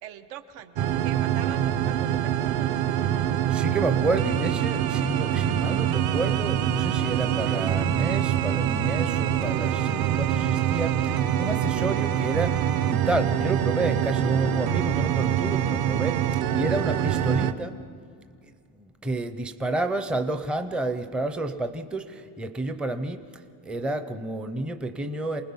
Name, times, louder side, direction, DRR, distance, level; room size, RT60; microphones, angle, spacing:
voice 1, 0.0-2.9, right 9 dB, 90° right, 8 dB, 1.3 m, -42 dB
sound 1, 0.8-17.5, right 10 dB, 55° right, 0.8 m, -25 dB
voice 2, 3.5-17.8 18.4-23.2 23.6-25.4, right 2 dB, ahead, 8 dB, 0.5 m, -30 dB
28.0 x 19.5 x 5.5 m, 2.2 s
cardioid pair, 160°, 45 cm